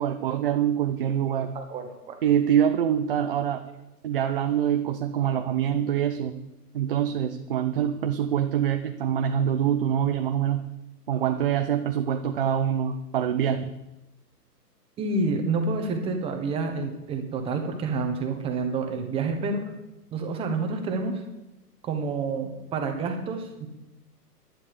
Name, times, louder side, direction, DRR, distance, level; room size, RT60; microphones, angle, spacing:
voice 1, 0.0-1.6 2.2-3.6 4.0-6.3 6.7-10.7 11.1-13.7, right 9 dB, 35° right, 6 dB, 0.7 m, -25 dB
voice 2, 1.5-2.2 15.0-19.6 20.1-21.2 21.8-23.7, right 3 dB, 10° right, 5 dB, 1.2 m, -28 dB
11.5 x 10.5 x 6.7 m, 0.96 s
hypercardioid pair, 155°, 48 cm